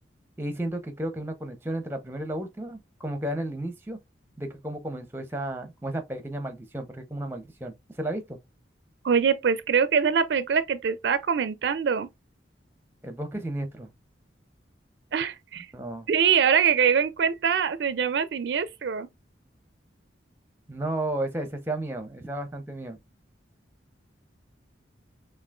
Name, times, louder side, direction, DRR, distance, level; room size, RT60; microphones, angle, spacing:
voice 1, 0.4-4.0 4.4-8.4 13.0-13.9 15.7-16.1 20.7-23.0, right 1 dB, 10° right, 0.6 m, -33 dB
voice 2, 9.0-12.1 15.1-15.7 16.1-19.1, right 7 dB, 65° right, 0.4 m, -23 dB
5.9 x 2.4 x 2.3 m
head